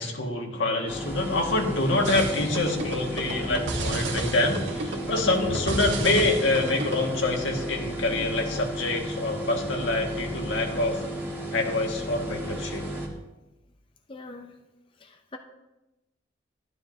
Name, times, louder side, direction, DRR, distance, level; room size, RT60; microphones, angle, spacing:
voice 1, 0.0-11.0 11.5-12.8, left 2 dB, 85° left, 1 dB, 1.7 m, -26 dB
sound 1, 0.9-13.1, right 1 dB, 10° right, 1.6 m, -34 dB
sound 2, 2.0-7.1, right 2 dB, 75° right, 1.5 m, -32 dB
voice 2, 14.1-14.5 15.0-15.4, left 3 dB, 30° left, 5 dB, 0.5 m, -43 dB
12.5 x 11.5 x 2.7 m, 0.99 s
head